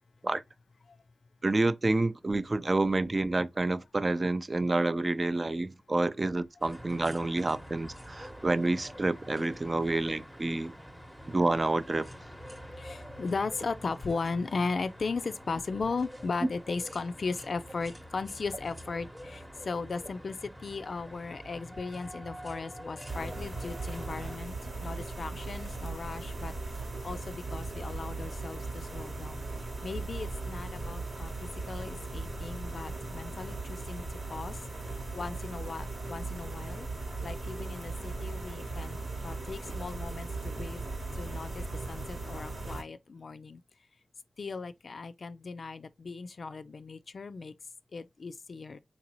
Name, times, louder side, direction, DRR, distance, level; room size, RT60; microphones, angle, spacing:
voice 1, 1.4-10.7 11.3-12.1, right 2 dB, 40° right, 0.4 m, -28 dB
sound 1, 6.6-24.4, equal, 10° right, 0.8 m, -46 dB
voice 2, 12.8-26.5 27.0-29.5 29.8-31.3 31.7-34.0 34.3-34.6 35.1-36.9 37.2-40.8 41.1-43.6 44.4-47.5 47.9-48.8, left 4 dB, 70° left, 0.3 m, -37 dB
sound 2, 23.1-42.8, right 3 dB, 80° right, 1.1 m, -38 dB
3.9 x 2.6 x 2.9 m
cardioid pair, 45°, 0 cm